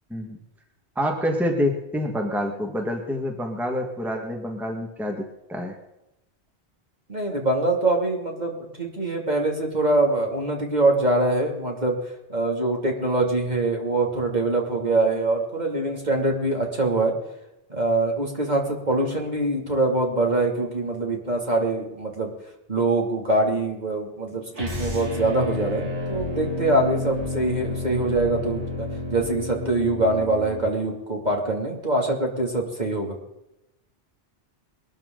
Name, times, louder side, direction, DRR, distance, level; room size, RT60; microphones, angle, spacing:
voice 1, 1.0-5.8, equal, ahead, 2 dB, 1.8 m, -27 dB
voice 2, 7.1-12.0 12.3-17.2 17.7-22.3 22.7-33.2, right 2 dB, 40° right, 0 dB, 2.9 m, -24 dB
sound 1, 24.5-30.7, left 2 dB, 80° right, 2.9 m, -31 dB
22.0 x 13.5 x 3.9 m, 0.90 s
omnidirectional pair, 1.2 m